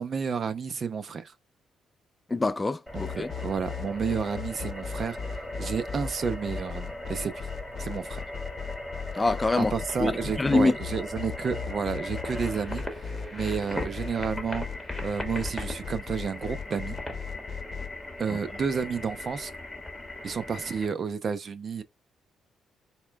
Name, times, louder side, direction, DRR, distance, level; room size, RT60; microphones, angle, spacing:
voice 1, 0.0-1.3 2.9-7.5 7.8-8.2 9.6-12.8 13.3-14.7 15.0-17.0 18.2-19.5 20.2-21.8, right 6 dB, 50° right, 0.5 m, -31 dB
voice 2, 2.3-3.3 9.2-9.7 10.0-10.1 10.4-10.8 18.3-18.4, left 3 dB, 20° left, 0.3 m, -24 dB
sound 1, 2.9-17.9, left 6 dB, 40° left, 0.8 m, -36 dB
sound 2, 2.9-20.9, left 1 dB, ahead, 1.2 m, -39 dB
4.2 x 2.2 x 3.4 m
cardioid pair, 90°, 0 cm